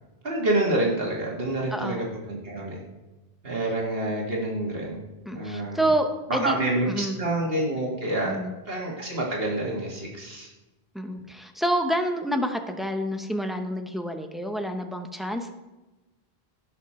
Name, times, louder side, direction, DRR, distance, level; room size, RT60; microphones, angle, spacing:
voice 1, 0.2-2.8 3.4-5.0 5.3-5.8 6.3-8.3 8.7-10.5, right 1 dB, 70° right, -2 dB, 1.9 m, -27 dB
voice 2, 1.7-2.0 5.3-6.6 6.9-7.2 8.3-8.5 10.9-15.5, right 1 dB, ahead, 5 dB, 0.7 m, -28 dB
16.5 x 6.2 x 4.3 m, 1.1 s
omnidirectional pair, 1.0 m